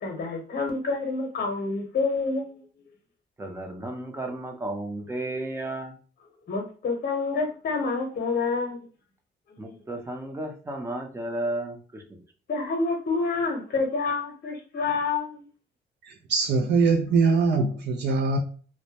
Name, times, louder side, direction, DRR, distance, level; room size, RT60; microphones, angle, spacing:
voice 1, 0.0-2.6 6.5-8.9 9.5-9.8 12.5-15.4, left 4 dB, 50° left, 0.8 m, -28 dB
voice 2, 3.4-5.9 9.6-12.0, right 1 dB, 15° right, 0.6 m, -33 dB
voice 3, 16.1-18.4, right 4 dB, 60° right, 0.4 m, -22 dB
2.1 x 2.1 x 2.8 m
cardioid pair, 90°, 20 cm